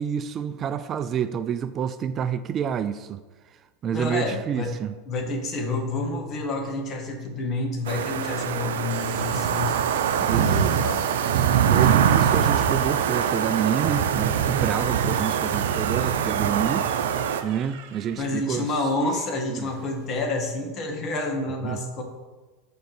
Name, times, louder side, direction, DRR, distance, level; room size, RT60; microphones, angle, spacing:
voice 1, 0.0-3.2 3.8-4.9 10.2-10.8 11.6-16.9 17.4-18.8 19.5-19.7 21.6-21.8, right 8 dB, 35° right, 12 dB, 0.4 m, -28 dB
voice 2, 3.9-4.7 5.1-9.8 10.6-11.0 18.2-22.0, left 2 dB, 40° left, 3 dB, 1.7 m, -29 dB
sound 1, 7.9-17.4, right 8 dB, 85° right, 0.6 m, -23 dB
Domestic sounds home sounds, 8.9-20.3, right 7 dB, 70° right, 1.1 m, -41 dB
6.7 x 5.5 x 6.6 m, 1.3 s
supercardioid pair, 115°, 0 cm